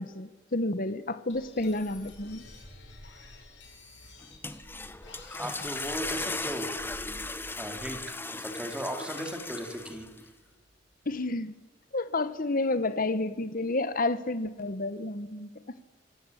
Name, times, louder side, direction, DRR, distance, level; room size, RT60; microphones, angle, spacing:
voice 1, 0.0-2.5 11.0-11.5 11.9-15.8, left 2 dB, 50° left, 1.3 m, -30 dB
sound 1, 1.3-8.1, left 2 dB, 75° left, 6.3 m, -49 dB
sound 2, 4.2-10.3, left 2 dB, 10° left, 1.1 m, -37 dB
voice 2, 5.4-6.7 7.6-10.1, equal, 5° right, 3.4 m, -37 dB
26.0 x 16.0 x 10.0 m
head